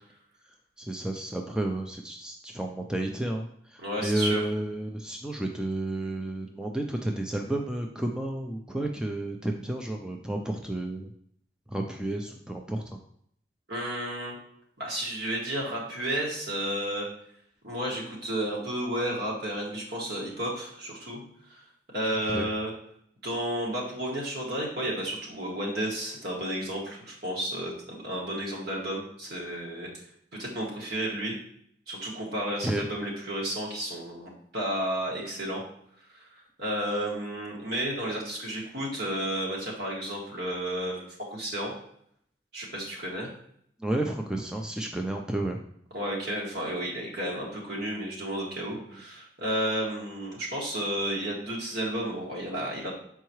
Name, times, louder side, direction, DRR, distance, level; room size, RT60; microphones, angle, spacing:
voice 1, 0.8-3.5 3.7-11.1 11.7-12.8 22.3-22.5 32.6-32.9 43.8-45.6, right 1 dB, 5° right, 2 dB, 0.4 m, -31 dB
voice 2, 3.8-4.4 13.7-14.4 14.8-17.1 17.6-21.2 21.5-21.6 21.9-22.7 23.2-29.9 30.4-31.3 31.9-35.6 36.1-36.2 36.6-41.1 41.3-41.7 42.5-43.3 45.9-52.9, right 1 dB, 65° right, -3 dB, 2.0 m, -32 dB
6.7 x 4.6 x 3.1 m, 0.67 s
head